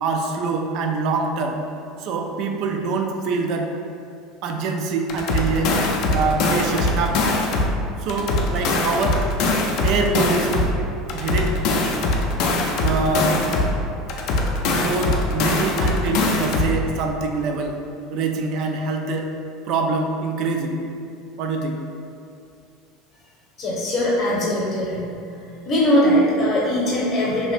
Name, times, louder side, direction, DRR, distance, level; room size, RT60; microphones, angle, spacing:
voice 1, 0.0-1.6 2.0-3.7 4.4-5.7 6.1-7.3 8.0-9.2 9.8-10.7 11.1-11.8 12.8-13.3 14.7-17.8 18.1-19.3 19.7-20.8 21.4-21.8, right 4 dB, 60° right, 3 dB, 0.3 m, -24 dB
sound 1, 5.1-7.8 8.1-10.8 11.1-13.8 14.1-16.8, left 2 dB, 65° left, 0.4 m, -21 dB
voice 2, 23.6-25.1 25.4-27.5, equal, 40° left, -6 dB, 0.8 m, -21 dB
2.8 x 2.5 x 3.2 m, 2.5 s
supercardioid pair, 100°, 0 cm